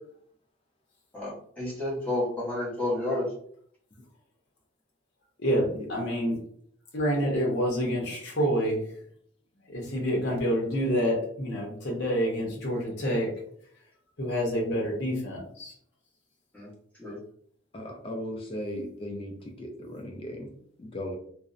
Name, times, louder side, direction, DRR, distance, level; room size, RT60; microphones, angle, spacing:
voice 1, 1.1-3.3 16.5-16.7 17.0-17.2, left 1 dB, 5° left, -8 dB, 0.9 m, -30 dB
voice 2, 5.4-6.4 6.9-8.8 9.7-13.3 14.2-15.7, equal, 55° left, -2 dB, 0.8 m, -27 dB
voice 3, 17.7-20.5 20.8-21.2, left 1 dB, 25° left, 2 dB, 0.3 m, -37 dB
2.5 x 2.0 x 2.4 m, 0.62 s
head